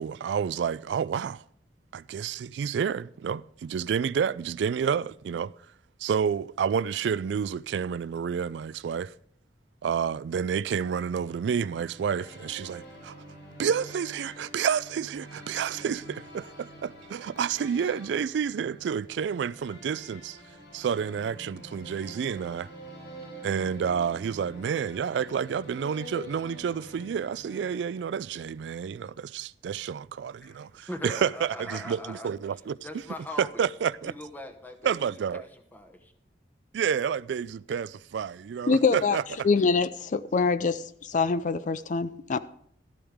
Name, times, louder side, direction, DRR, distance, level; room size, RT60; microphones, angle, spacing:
voice 1, 0.0-1.4 1.9-5.5 6.0-9.1 9.8-13.2 13.6-20.4 20.7-22.7 23.4-33.0 33.4-34.1 34.8-35.4 36.7-39.5, right 7 dB, 85° right, 0.3 m, -29 dB
sound 1, 10.8-28.5, equal, 75° left, 5.1 m, -47 dB
voice 2, 30.9-32.3 32.8-33.6 34.0-35.0 35.3-36.1, left 1 dB, 10° left, 1.2 m, -40 dB
voice 3, 38.7-39.2 39.4-42.4, left 4 dB, 45° left, 0.4 m, -25 dB
13.0 x 12.0 x 3.5 m
head